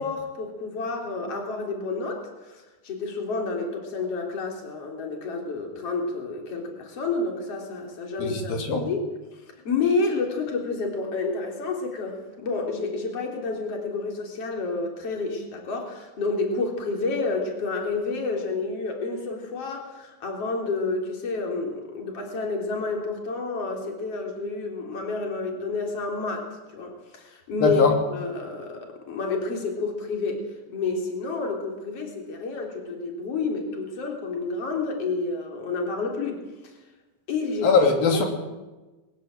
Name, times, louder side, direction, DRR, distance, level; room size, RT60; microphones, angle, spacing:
voice 1, 0.0-8.6 8.8-9.1 9.6-27.8 28.1-36.7 37.3-37.8 38.1-38.2, left 3 dB, 45° left, 2 dB, 4.6 m, -29 dB
voice 2, 8.2-8.8 27.6-27.9 37.6-38.3, left 4 dB, 85° left, 3 dB, 4.7 m, -20 dB
21.0 x 16.0 x 9.0 m, 1.1 s
omnidirectional pair, 4.0 m